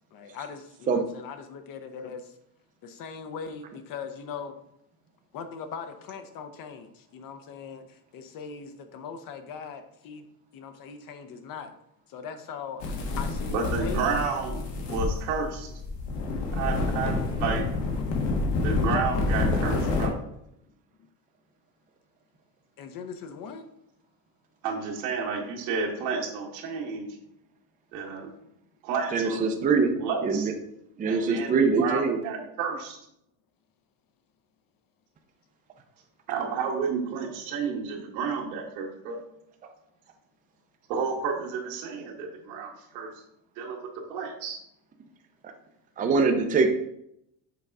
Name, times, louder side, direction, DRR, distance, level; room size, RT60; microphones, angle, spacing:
voice 1, 0.1-2.4 2.8-4.6 5.3-10.2 10.5-11.7 12.1-12.8 13.2-14.1 14.9-15.0 22.8-23.7, left 6 dB, 45° left, 8 dB, 0.8 m, -40 dB
sound 1, 12.8-20.1, left 3 dB, 75° left, 1.7 m, -28 dB
voice 2, 13.5-15.7 16.5-17.7 18.6-20.2 24.6-27.2 27.9-28.3 28.8-29.5 30.0-30.5 31.1-33.0 36.3-39.2 40.9-43.1 43.6-44.6, right 5 dB, 90° right, -1 dB, 1.9 m, -31 dB
voice 3, 29.1-29.9 30.2-30.5 31.0-32.2 45.4-45.5 46.0-46.7, right 4 dB, 20° right, 4 dB, 0.5 m, -23 dB
6.8 x 3.8 x 4.7 m, 0.77 s
cardioid pair, 155°, 48 cm